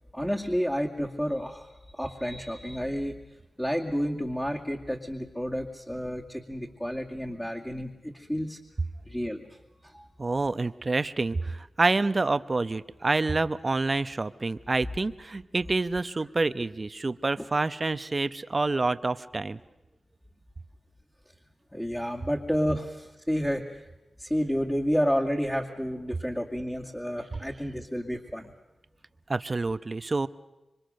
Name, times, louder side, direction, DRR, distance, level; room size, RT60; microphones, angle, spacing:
voice 1, 0.1-3.1 3.6-8.6 9.1-9.5 9.9-10.1 21.7-23.8 24.2-28.5, equal, 10° left, -2 dB, 2.3 m, -30 dB
voice 2, 10.2-19.6 27.3-27.4 29.3-30.3, right 3 dB, 35° right, 13 dB, 0.9 m, -27 dB
27.0 x 24.5 x 6.6 m, 1.0 s
cardioid pair, 70°, 0 cm